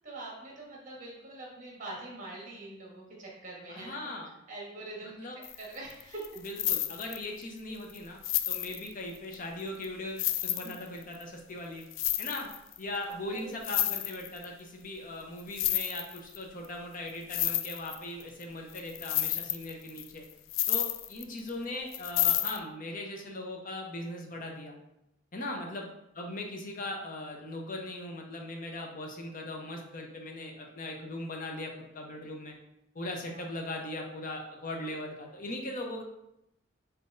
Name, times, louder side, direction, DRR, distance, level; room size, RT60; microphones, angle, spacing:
voice 1, 0.0-4.1 4.5-5.2 5.5-6.3 13.3-13.6 25.5-25.7 33.3-33.4, right 2 dB, 45° right, -3 dB, 1.4 m, -44 dB
voice 2, 3.7-4.3 5.0-5.4 6.4-8.2 8.5-11.8 12.2-12.5 12.8-20.2 20.7-24.8 25.3-25.9 26.1-32.5 32.9-36.0, left 1 dB, 45° left, 1 dB, 0.7 m, -39 dB
sound 1, 5.4-7.4 7.9-8.0 8.2-9.3 9.8-9.9 10.2-11.2 11.8-12.8 13.1-13.2 13.4-14.4 15.4-16.4 16.6-16.7 17.1-18.4 18.7-21.5 21.9-22.6, left 12 dB, 75° left, 0.3 m, -30 dB
4.0 x 3.8 x 2.6 m, 0.84 s
head